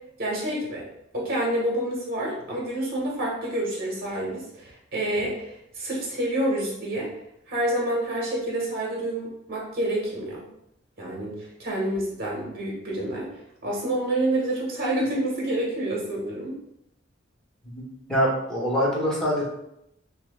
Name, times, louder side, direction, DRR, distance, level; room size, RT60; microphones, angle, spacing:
voice 1, 0.2-0.9 1.1-7.1 7.5-10.4 11.0-13.2 13.6-16.5, right 1 dB, 55° right, -3 dB, 1.4 m, -28 dB
voice 2, 17.7-19.4, equal, 5° left, -6 dB, 1.2 m, -25 dB
5.6 x 2.3 x 2.3 m, 0.78 s
head